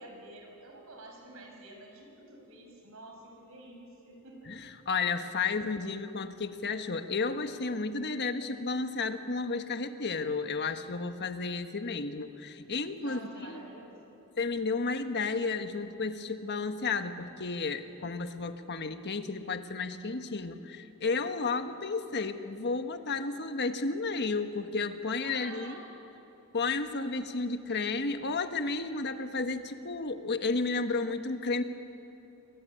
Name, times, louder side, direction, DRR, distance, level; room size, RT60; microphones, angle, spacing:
voice 1, 0.0-4.6 13.0-14.2 25.2-25.8, right 2 dB, 70° right, 2 dB, 6.7 m, -49 dB
voice 2, 4.5-13.6 14.4-25.8 26.5-31.6, left 4 dB, 50° left, 8 dB, 1.3 m, -32 dB
29.0 x 23.0 x 9.1 m, 3.0 s
head